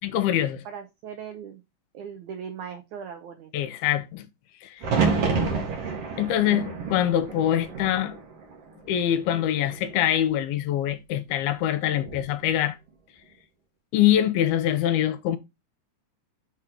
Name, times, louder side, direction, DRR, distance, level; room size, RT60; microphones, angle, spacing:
voice 1, 0.0-0.6 3.5-4.3 4.6-4.8 6.2-8.1 8.9-12.8 13.9-15.4, left 11 dB, 75° left, 2.5 m, -24 dB
voice 2, 0.6-1.6 1.9-3.5 5.2-5.7, right 7 dB, 80° right, 1.7 m, -39 dB
sound 1, 4.8-8.9 9.2-10.0 11.9-12.3, right 4 dB, 55° right, 1.8 m, -29 dB
6.3 x 4.8 x 5.9 m
omnidirectional pair, 4.6 m